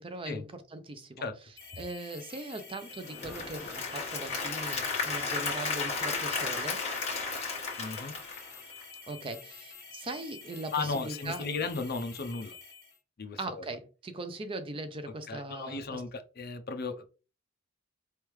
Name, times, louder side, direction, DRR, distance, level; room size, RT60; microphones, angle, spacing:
voice 1, 0.0-1.3 1.8-6.8 9.1-11.4 13.4-16.0, right 2 dB, 25° right, 0.5 m, -40 dB
sound 1, 1.6-13.0, left 5 dB, 15° left, 2.0 m, -49 dB
Applause / Crowd, 2.9-9.0, left 4 dB, 30° left, 1.4 m, -34 dB
voice 2, 7.8-8.1 10.7-12.6 13.2-13.6 15.3-17.0, left 4 dB, 50° left, 0.6 m, -35 dB
4.4 x 3.4 x 3.1 m
head